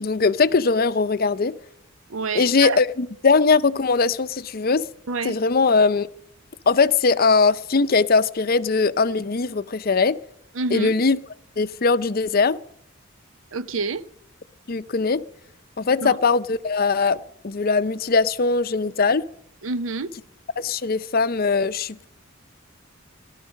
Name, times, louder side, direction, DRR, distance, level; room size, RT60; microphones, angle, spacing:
voice 1, 0.0-1.5 2.3-4.8 5.2-6.1 6.7-10.2 10.7-11.2 11.6-12.6 14.7-15.2 15.8-19.2 20.6-22.1, left 4 dB, 45° left, 0.6 m, -20 dB
voice 2, 2.1-2.8 5.1-5.4 10.5-11.0 13.5-14.0 16.0-16.2 19.6-20.1, right 4 dB, 70° right, 0.7 m, -28 dB
18.0 x 12.5 x 5.2 m
head